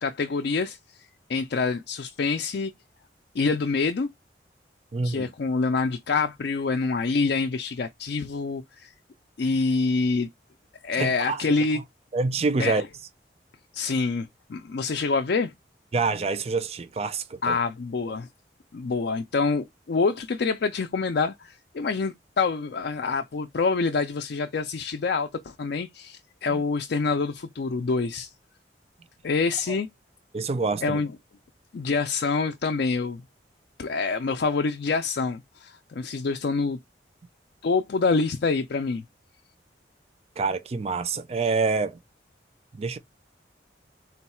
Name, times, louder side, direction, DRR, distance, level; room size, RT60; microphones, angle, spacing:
voice 1, 0.0-2.7 3.3-4.1 5.0-8.9 9.4-10.3 10.8-11.8 12.6-12.8 13.7-15.5 17.4-18.3 18.7-28.3 29.2-29.9 30.8-31.1 31.7-33.2 33.8-36.8 37.6-39.0, left 4 dB, 60° left, 0.4 m, -26 dB
voice 2, 4.9-5.3 11.0-11.4 12.1-12.8 15.9-17.6 26.5-26.6 29.7-29.8 30.3-31.0 40.4-42.0 42.7-43.0, right 4 dB, 35° right, 0.4 m, -26 dB
3.9 x 2.3 x 4.2 m
head